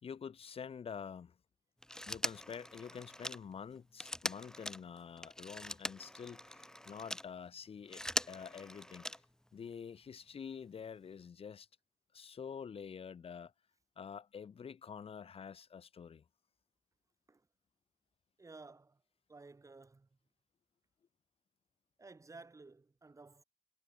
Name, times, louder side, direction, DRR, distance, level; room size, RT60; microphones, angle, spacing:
voice 1, 0.0-1.3 2.0-8.0 8.3-9.1 9.5-11.7 12.1-13.5 14.0-16.2, left 7 dB, 35° left, 1.5 m, -47 dB
Telephone, 1.8-7.3 7.8-9.5 10.8-10.9, left 1 dB, 5° left, 2.6 m, -42 dB
voice 2, 18.4-19.0 19.3-20.1 22.0-23.4, right 3 dB, 20° right, 6.5 m, -55 dB
cardioid pair, 110°, 17 cm